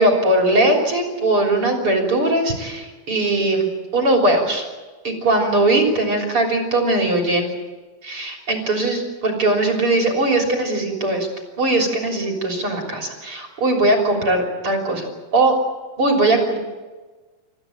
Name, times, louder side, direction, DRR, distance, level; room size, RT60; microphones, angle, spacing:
voice 1, 0.0-4.7 5.0-7.5 8.0-11.3 11.6-15.1 15.3-15.6 16.0-16.6, right 2 dB, 35° right, 1 dB, 4.1 m, -19 dB
29.5 x 15.0 x 9.0 m, 1.3 s
omnidirectional pair, 4.3 m